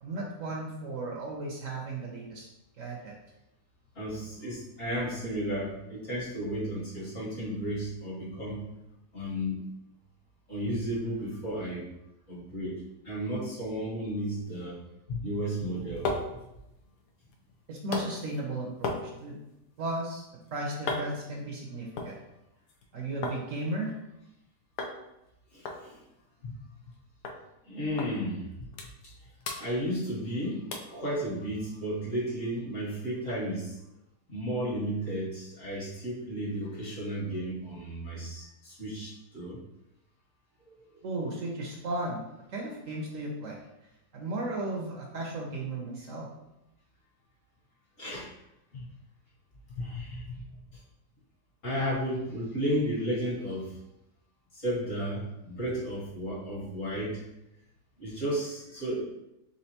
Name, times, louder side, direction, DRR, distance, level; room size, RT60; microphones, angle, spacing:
voice 1, 0.0-2.5 2.8-3.2 17.7-19.4 19.8-20.2 20.5-22.2 22.9-23.9 41.0-42.2 42.5-43.6 44.1-46.3, right 2 dB, 60° right, -1 dB, 1.0 m, -35 dB
voice 2, 4.0-8.6 9.1-9.6 10.5-11.9 12.3-14.7 15.1-16.2 25.5-26.0 26.4-26.5 27.7-28.7 29.6-33.7 34.3-39.6 40.7-40.8 48.0-48.3 48.7-48.9 49.8-50.4 51.6-53.7 54.5-57.2 58.0-59.0, equal, 55° left, -6 dB, 1.8 m, -33 dB
soda can empty on table metal wood, 15.5-23.4 23.7-24.4 24.8-25.0 25.2-25.3 25.6-27.0 27.2-27.4 28.0-28.1 28.5-29.1 29.4-30.3 30.7-31.0 31.5-31.6, left 3 dB, 85° left, 1.2 m, -38 dB
4.2 x 3.6 x 2.8 m, 0.89 s
omnidirectional pair, 1.7 m